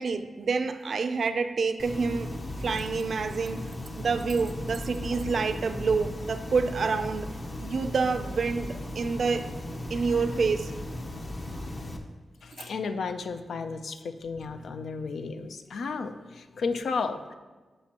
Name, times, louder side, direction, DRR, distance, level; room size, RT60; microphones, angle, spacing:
voice 1, 0.0-3.7 4.0-7.3 7.6-9.5 9.9-10.7, right 4 dB, 55° right, 0.5 m, -28 dB
sound 1, 1.8-12.0, left 1 dB, 35° left, 0.7 m, -37 dB
voice 2, 12.4-17.3, left 4 dB, 75° left, 0.5 m, -33 dB
13.0 x 5.3 x 2.9 m
wide cardioid pair, 125°, 0 cm